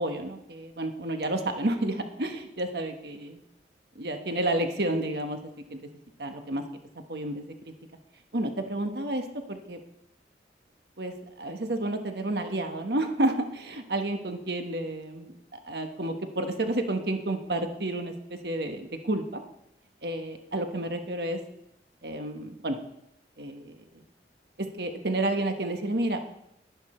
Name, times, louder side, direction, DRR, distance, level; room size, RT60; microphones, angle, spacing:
voice 1, 0.0-3.3 4.0-5.4 5.7-5.9 6.2-6.6 7.1-7.4 8.3-9.8 11.0-19.4 20.0-21.4 22.0-22.8 23.4-24.0 24.8-26.2, right 1 dB, 65° right, 6 dB, 1.3 m, -30 dB
11.5 x 10.5 x 4.4 m, 0.82 s
head